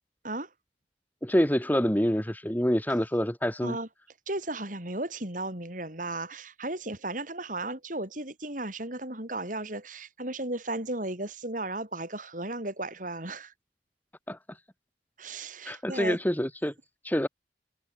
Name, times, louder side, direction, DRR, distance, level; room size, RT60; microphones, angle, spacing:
voice 1, 1.2-3.8 14.3-14.4 15.7-16.7 17.0-17.3, equal, 10° left, 2.7 m, -26 dB
voice 2, 4.3-13.5 15.2-16.2, right 2 dB, 45° right, 6.9 m, -35 dB
head